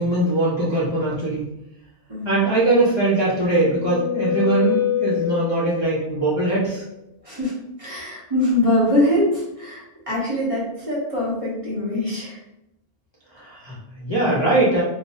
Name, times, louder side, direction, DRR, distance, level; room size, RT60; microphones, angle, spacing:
voice 1, 0.0-1.5 2.2-6.8 13.3-14.8, right 2 dB, 30° left, -9 dB, 0.6 m, -21 dB
voice 2, 2.1-2.4 7.2-12.4, left 1 dB, 35° right, -7 dB, 0.8 m, -23 dB
sound 1, 2.9-6.0, left 11 dB, 80° left, 1.3 m, -25 dB
3.2 x 2.0 x 2.6 m, 0.87 s
omnidirectional pair, 1.1 m